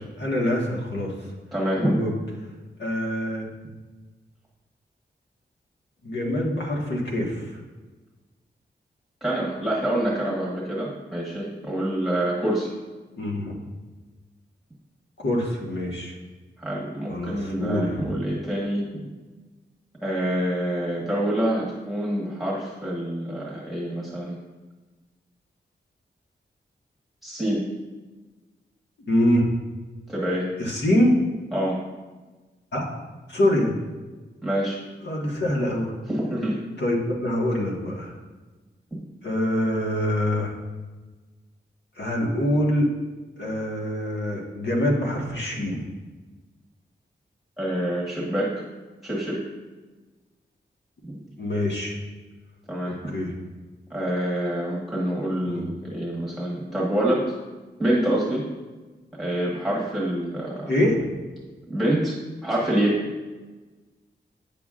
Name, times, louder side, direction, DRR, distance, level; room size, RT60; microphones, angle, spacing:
voice 1, 0.2-1.1 1.8-2.1 2.8-3.4 6.0-7.5 13.1-13.5 15.2-16.1 17.1-18.1 29.1-29.5 30.6-31.2 32.7-32.8 33.3-33.7 35.0-35.9 36.8-38.1 39.2-40.5 42.0-42.9 43.4-45.8 51.4-52.0 52.9-53.3 55.4-55.6 60.7-61.1, left 1 dB, 75° left, -2 dB, 1.5 m, -24 dB
voice 2, 1.5-2.0 9.2-12.7 16.6-19.1 20.0-24.4 27.2-27.7 30.1-30.5 31.5-31.8 34.4-34.8 36.1-36.6 38.9-39.0 47.6-48.5 49.0-49.4 51.0-51.1 52.7-53.0 53.9-57.3 57.8-58.5 59.2-60.7 61.7-62.2 62.4-63.1, right 1 dB, ahead, -6 dB, 1.3 m, -26 dB
9.0 x 7.0 x 2.5 m, 1.3 s
wide cardioid pair, 115°, 18 cm